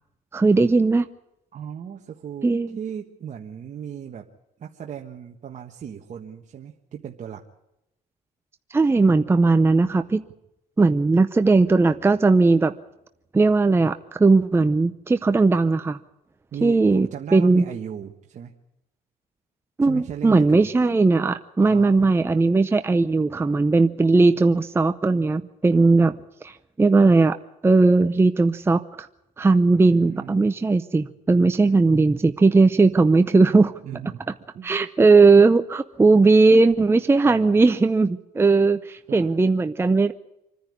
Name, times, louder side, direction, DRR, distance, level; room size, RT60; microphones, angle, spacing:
voice 1, 0.3-1.1 2.4-2.8 8.7-10.2 10.8-12.7 13.3-16.0 16.6-17.6 19.8-26.1 26.4-27.4 27.6-29.1 29.4-33.7 34.6-40.1, right 3 dB, 15° right, 9 dB, 0.7 m, -18 dB
voice 2, 1.5-2.5 2.8-4.2 4.6-7.4 16.5-18.5 19.8-20.7 21.6-22.0 29.7-30.4 33.8-34.2 34.5-34.7 37.2-37.5 39.1-39.3, right 8 dB, 45° right, 1 dB, 1.5 m, -36 dB
26.0 x 10.5 x 9.7 m, 0.88 s
cardioid pair, 110°, 17 cm